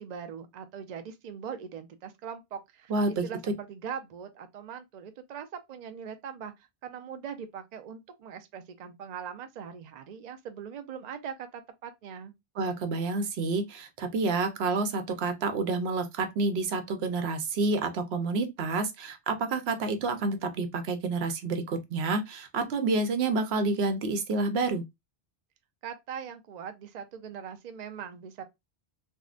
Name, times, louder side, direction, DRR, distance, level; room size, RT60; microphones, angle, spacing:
voice 1, 0.0-6.5 6.8-12.3 25.8-28.4, right 7 dB, 55° right, 0.5 m, -41 dB
voice 2, 2.9-3.2 12.6-24.8, right 3 dB, 80° right, 0.9 m, -29 dB
3.6 x 2.1 x 2.4 m
omnidirectional pair, 1.1 m